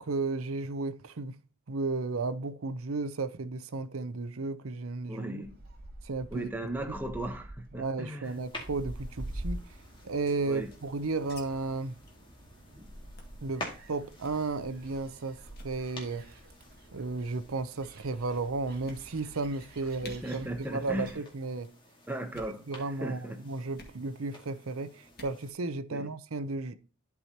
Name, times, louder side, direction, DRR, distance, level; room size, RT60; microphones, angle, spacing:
voice 1, 0.0-1.4 1.7-5.4 6.0-6.5 7.7-9.6 10.0-12.0 13.4-16.2 16.9-21.7 22.7-26.7, right 3 dB, 85° right, 0.7 m, -34 dB
voice 2, 5.1-5.5 6.3-8.4 10.5-10.7 12.8-12.9 20.0-21.1 22.1-22.6 23.0-23.4 25.9-26.1, right 1 dB, 10° right, 0.9 m, -37 dB
Gull seagull, 5.4-21.1, right 1 dB, 50° right, 2.2 m, -47 dB
sound 1, 8.2-25.5, left 1 dB, 25° left, 2.2 m, -51 dB
sound 2, 10.0-11.4 11.7-11.8 12.0-12.2 12.6-12.8 13.2-13.4 14.1-14.4 15.0-15.2 15.5-15.8 16.6-17.1 17.8-17.9 18.3-18.4 18.8-19.4 19.7-19.8 20.0-20.2 20.8-21.1 21.3-21.7 22.2-22.6 23.7-24.0 25.0-25.4, left 2 dB, 50° left, 1.9 m, -51 dB
12.0 x 4.8 x 2.8 m
head